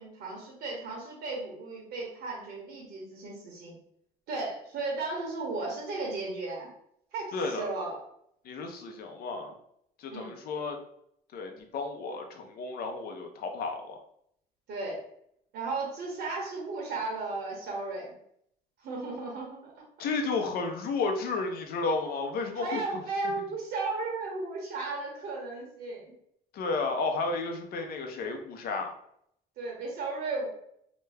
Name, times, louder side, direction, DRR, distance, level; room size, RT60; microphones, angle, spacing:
voice 1, 0.0-3.7 4.3-6.7 7.1-8.0 10.1-10.3 14.7-15.0 15.5-18.1 18.8-19.8 22.6-26.1 29.6-30.5, right 3 dB, 70° right, -1 dB, 1.1 m, -35 dB
voice 2, 7.3-7.7 8.4-9.5 10.0-10.8 11.3-14.0 20.0-22.8 26.5-28.9, left 3 dB, 65° left, 4 dB, 0.7 m, -32 dB
2.9 x 2.2 x 3.4 m, 0.71 s
cardioid pair, 110°, 17 cm